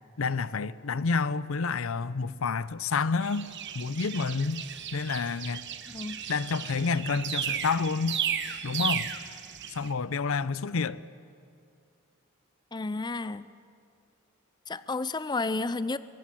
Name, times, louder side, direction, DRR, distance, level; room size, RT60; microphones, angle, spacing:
voice 1, 0.2-4.7 4.9-5.7 6.3-8.2 8.6-9.1 9.7-11.0, left 4 dB, 70° left, 0.6 m, -29 dB
sound 1, 3.2-9.9, right 9 dB, 60° right, 1.2 m, -35 dB
voice 2, 5.9-6.2 12.7-13.4 14.7-16.0, left 3 dB, 20° left, 0.5 m, -31 dB
24.0 x 21.5 x 7.7 m
head